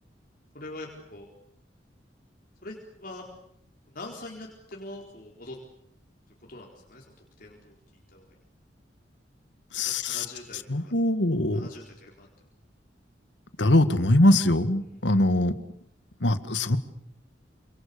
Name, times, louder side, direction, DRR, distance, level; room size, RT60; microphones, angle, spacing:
voice 1, 0.5-1.3 2.6-3.3 3.9-5.6 6.4-7.0 7.4-7.8 8.1-8.3 10.1-10.9 11.5-12.3, left 2 dB, 50° left, -1 dB, 4.3 m, -43 dB
voice 2, 9.7-10.3 10.7-11.7 13.6-15.5 16.2-16.8, left 1 dB, 85° left, 11 dB, 1.9 m, -22 dB
28.5 x 26.5 x 7.0 m, 0.72 s
head